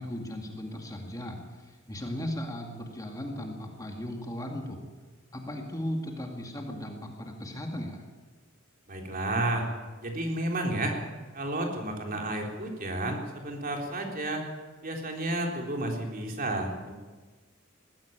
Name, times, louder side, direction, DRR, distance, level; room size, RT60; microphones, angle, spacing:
voice 1, 0.0-4.8 5.3-8.0, left 1 dB, 15° left, 2 dB, 2.3 m, -37 dB
voice 2, 8.9-9.7 10.0-11.0 11.3-14.4 14.8-16.9, right 1 dB, 45° right, 1 dB, 3.6 m, -31 dB
20.0 x 15.0 x 9.1 m, 1.4 s
head